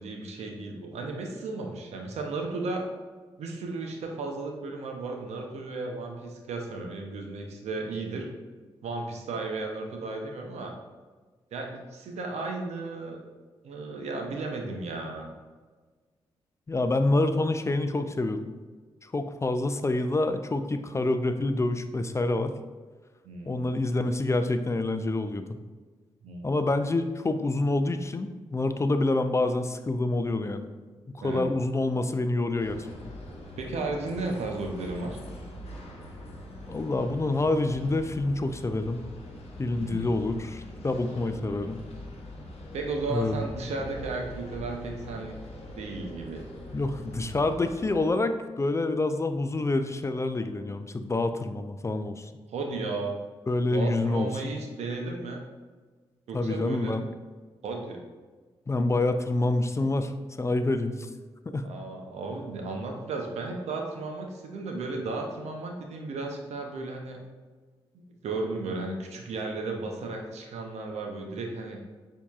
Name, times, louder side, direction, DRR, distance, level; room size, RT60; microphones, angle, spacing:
voice 1, 0.0-2.8 3.4-8.3 8.8-10.7 11.5-13.2 13.6-15.3 23.2-23.7 26.2-26.5 31.2-31.4 33.6-35.2 39.7-40.2 42.7-45.4 45.8-46.4 52.5-53.1 53.7-55.4 56.3-57.0 57.6-58.0 61.6-67.2 67.9-71.8, right 3 dB, 80° right, 2 dB, 0.6 m, -34 dB
voice 2, 16.7-18.4 19.0-22.5 23.5-25.4 26.4-30.7 31.1-32.9 36.7-39.0 39.6-41.8 43.1-43.4 46.7-52.3 53.5-54.3 56.3-57.1 58.7-60.1 60.4-61.1 61.5-61.7, left 2 dB, 25° left, 8 dB, 0.4 m, -27 dB
sound 1, 32.6-48.1, left 1 dB, 70° left, 0.8 m, -43 dB
6.9 x 2.8 x 2.4 m, 1.4 s
supercardioid pair, 45°, 11 cm